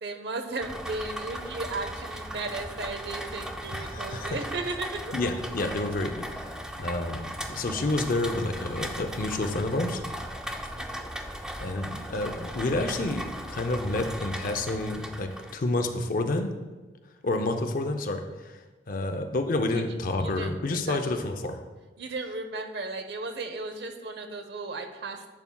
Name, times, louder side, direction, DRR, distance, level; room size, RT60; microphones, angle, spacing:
voice 1, 0.0-5.1 10.7-11.1 19.7-19.8 20.2-20.5 20.8-21.2 22.0-25.3, right 3 dB, 65° right, 7 dB, 0.7 m, -35 dB
Rain, 0.6-15.6, equal, 5° right, 0.4 m, -37 dB
voice 2, 3.7-4.4 5.1-10.0 11.6-16.5 17.2-18.6 18.9-21.6, left 2 dB, 50° left, 6 dB, 0.6 m, -29 dB
10.5 x 5.8 x 2.3 m, 1.2 s
head